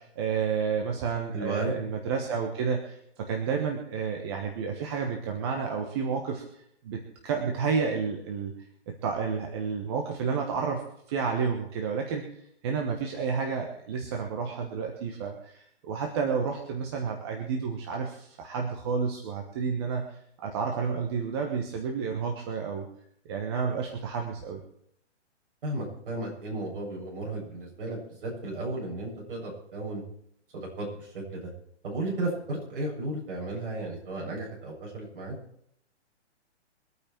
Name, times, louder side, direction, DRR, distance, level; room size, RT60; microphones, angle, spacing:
voice 1, 0.0-8.5 8.9-10.8 11.1-12.2 12.6-22.9 23.2-24.6, right 5 dB, 20° right, 2 dB, 1.2 m, -30 dB
voice 2, 1.3-1.8 25.6-30.0 30.5-31.5 31.8-35.4, right 2 dB, 50° right, -3 dB, 7.7 m, -34 dB
23.5 x 9.0 x 4.6 m, 0.70 s
hypercardioid pair, 170°, 35 cm